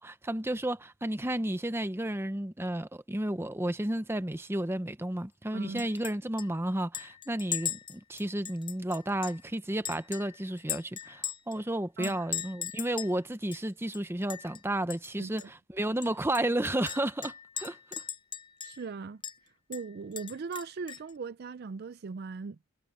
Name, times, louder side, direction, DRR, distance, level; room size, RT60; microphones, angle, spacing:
voice 1, 0.0-18.0, right 1 dB, 10° right, 0.8 m, -32 dB
voice 2, 5.5-5.9 12.0-12.3 15.2-15.5 18.6-19.2 19.7-22.7, right 4 dB, 50° right, 0.4 m, -39 dB
Chink clink, 5.8-6.1 6.4-6.5 6.9-9.4 9.8-11.6 12.0-13.2 13.5-13.6 13.9-14.6 14.9-15.1 15.4-15.5 16.0-18.9 19.2-19.4 19.7-21.1, left 9 dB, 25° left, 0.6 m, -39 dB
head